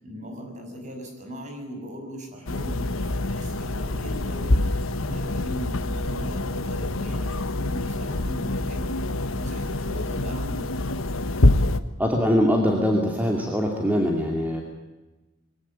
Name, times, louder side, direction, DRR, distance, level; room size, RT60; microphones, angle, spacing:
voice 1, 0.0-10.7, equal, 35° right, 3 dB, 6.7 m, -39 dB
sound 1, 2.5-11.8, left 2 dB, 75° left, 1.3 m, -26 dB
voice 2, 12.0-14.6, equal, 10° right, 0 dB, 2.6 m, -22 dB
23.0 x 18.0 x 8.7 m, 1.1 s
head